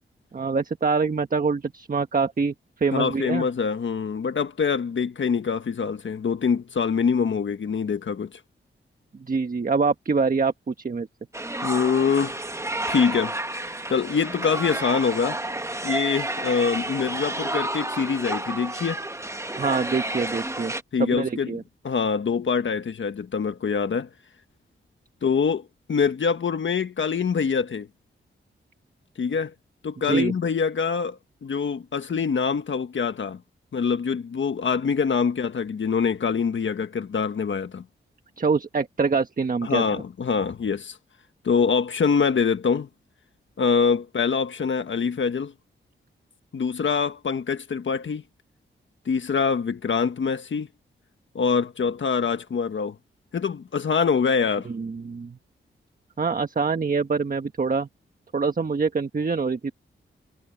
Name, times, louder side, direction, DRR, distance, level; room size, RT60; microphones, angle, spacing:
voice 1, 0.3-3.5 9.2-11.1 19.6-20.7 21.0-21.6 30.0-30.3 38.4-39.8 54.6-55.4 56.2-57.9 58.3-59.7, right 4 dB, 40° right, 1.4 m, -25 dB
voice 2, 2.9-8.3 11.6-12.4 12.9-13.3 13.6-15.4 15.8-19.0 20.9-21.5 21.8-24.1 25.2-27.9 29.2-29.5 29.8-33.4 33.7-37.8 39.6-41.0 41.4-42.9 43.6-45.5 46.5-48.2 49.0-50.7 51.3-53.0 53.3-54.7, left 6 dB, 65° left, 1.5 m, -24 dB
sound 1, 11.3-20.8, right 2 dB, 15° right, 1.3 m, -30 dB
cardioid pair, 75°, 21 cm